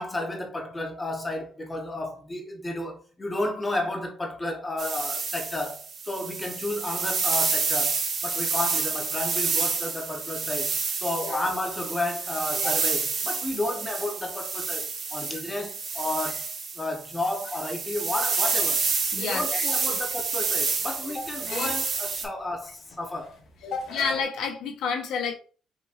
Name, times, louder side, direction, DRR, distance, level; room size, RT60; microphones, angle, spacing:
voice 1, 0.0-18.8 19.2-23.4 23.7-23.9, left 1 dB, 20° left, 1.2 m, -32 dB
sound 1, 4.8-22.2, right 4 dB, 50° right, 1.6 m, -29 dB
sound 2, 18.8-24.2, left 4 dB, 65° left, 1.3 m, -42 dB
voice 2, 19.1-20.0 23.6-25.4, left 5 dB, 85° left, 1.1 m, -30 dB
5.7 x 3.2 x 2.6 m
cardioid pair, 115°, 0 cm